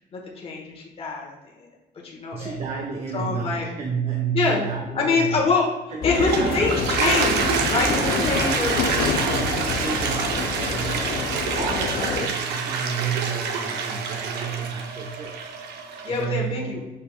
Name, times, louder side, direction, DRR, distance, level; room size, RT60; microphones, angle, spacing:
voice 1, 0.1-1.7 2.0-2.6 3.1-3.7 4.3-5.6 6.0-8.8 11.5-11.6 16.0-16.8, left 4 dB, 35° left, -2 dB, 1.1 m, -25 dB
voice 2, 2.3-5.4 5.9-6.8 7.7-8.6 9.2-15.5 16.1-16.8, right 6 dB, 35° right, 2 dB, 0.6 m, -31 dB
Toilet flush, 5.9-16.2, right 5 dB, 75° right, 0.7 m, -27 dB
sound 1, 6.0-12.3, left 6 dB, 60° left, 0.5 m, -28 dB
6.5 x 3.4 x 2.3 m, 1.1 s
cardioid pair, 110°, 17 cm